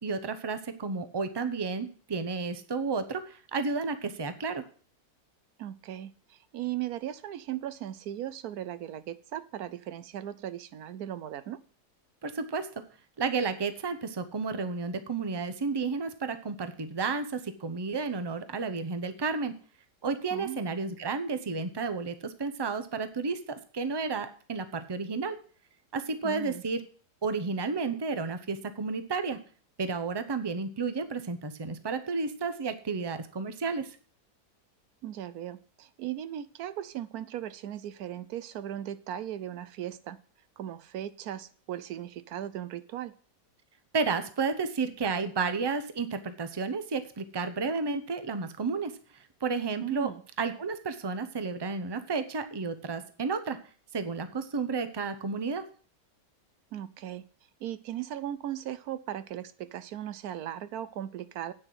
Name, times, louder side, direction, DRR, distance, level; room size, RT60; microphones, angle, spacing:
voice 1, 0.0-4.7 12.2-12.8 13.2-19.5 20.0-25.4 25.9-26.8 27.2-29.4 29.8-34.0 43.9-50.1 50.4-53.6 53.9-55.7, right 4 dB, 30° right, 11 dB, 0.5 m, -32 dB
voice 2, 5.6-11.6 20.3-20.6 26.2-26.6 35.0-40.2 40.6-43.1 49.8-50.2 56.7-57.3 57.6-61.5, right 11 dB, 70° right, 15 dB, 1.1 m, -37 dB
8.9 x 6.5 x 7.6 m, 0.42 s
omnidirectional pair, 1.8 m